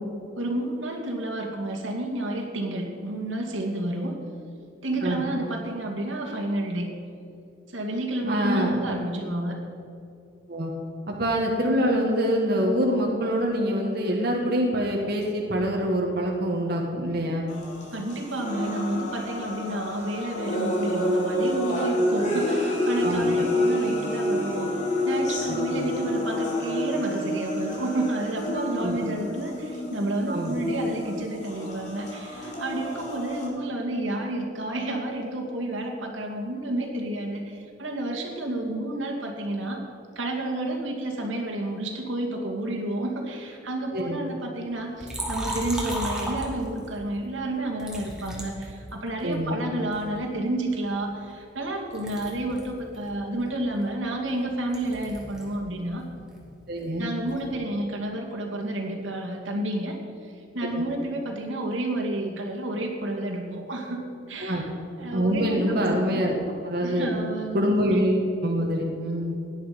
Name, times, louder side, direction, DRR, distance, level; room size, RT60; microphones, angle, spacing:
voice 1, 0.4-4.2 4.8-6.9 7.7-9.6 17.9-39.8 40.2-56.0 57.0-64.7 65.0-66.2 66.8-67.6, right 1 dB, 85° right, 1 dB, 2.4 m, -30 dB
voice 2, 8.3-8.8 10.5-10.7 11.1-17.5 23.0-23.3 25.5-25.9 28.5-29.0 30.3-30.6 43.9-44.2 49.2-49.6 56.7-57.1 60.7-60.9 64.4-64.6 65.1-66.3 66.6-67.1 67.5-69.3, equal, 55° right, -1 dB, 1.8 m, -25 dB
sound 1, 17.5-33.5, left 1 dB, 40° left, 3.2 m, -28 dB
Liquid, 45.0-47.0 47.8-49.3 49.9-51.7 51.9-55.6 55.9-57.5, right 1 dB, 5° right, 2.7 m, -36 dB
17.5 x 11.0 x 5.3 m, 2.6 s
head